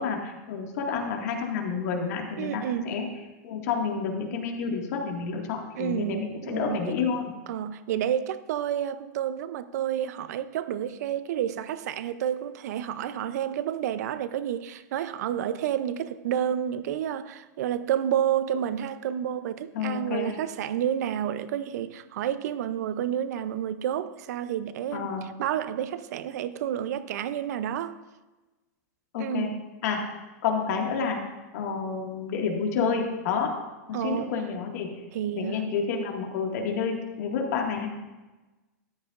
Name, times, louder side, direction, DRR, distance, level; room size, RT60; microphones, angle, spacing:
voice 1, 0.0-3.1 3.4-7.2 19.7-20.3 24.9-25.3 29.1-29.5 29.8-30.1 30.4-31.2 31.5-33.5 33.9-34.9 35.4-37.9, left 5 dB, 65° left, 2.0 m, -29 dB
voice 2, 2.4-2.9 5.8-6.9 7.5-28.0 29.2-29.6 33.9-34.4 35.1-35.7, right 10 dB, 70° right, 0.6 m, -30 dB
13.5 x 9.9 x 2.5 m
supercardioid pair, 135°, 9 cm